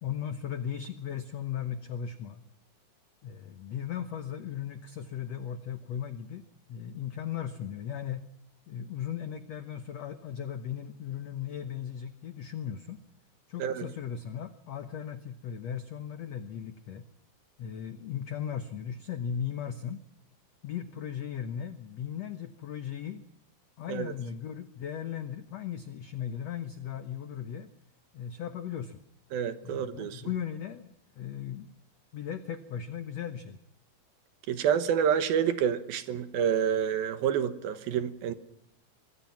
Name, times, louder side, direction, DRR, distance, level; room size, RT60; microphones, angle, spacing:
voice 1, 0.0-2.4 3.2-6.4 6.7-8.2 8.7-13.0 13.5-17.0 17.6-20.0 20.6-23.2 23.8-27.7 28.1-29.0 29.6-31.8 32.1-33.6, left 9 dB, 90° left, 1.4 m, -37 dB
voice 2, 29.3-30.2 34.5-38.3, right 8 dB, 75° right, 3.0 m, -28 dB
25.5 x 21.0 x 5.9 m
omnidirectional pair, 4.5 m